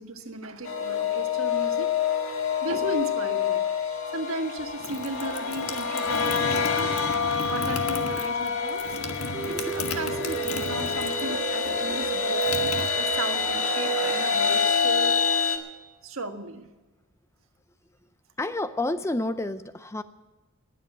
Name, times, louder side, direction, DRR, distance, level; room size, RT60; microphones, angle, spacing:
voice 1, 0.0-1.9 2.6-3.6 4.1-6.9 7.5-8.8 9.2-15.2 16.0-16.7, right 2 dB, 65° right, 6 dB, 1.5 m, -35 dB
sound 1, 0.6-15.6, left 5 dB, 65° left, 1.8 m, -27 dB
sound 2, 4.6-11.4 11.6-13.5, left 3 dB, 85° left, 1.4 m, -35 dB
sound 3, 9.3-15.3, right 2 dB, 25° right, 0.7 m, -37 dB
voice 2, 18.4-20.0, left 2 dB, 15° left, 12 dB, 0.4 m, -29 dB
19.5 x 7.8 x 8.1 m, 1.2 s
head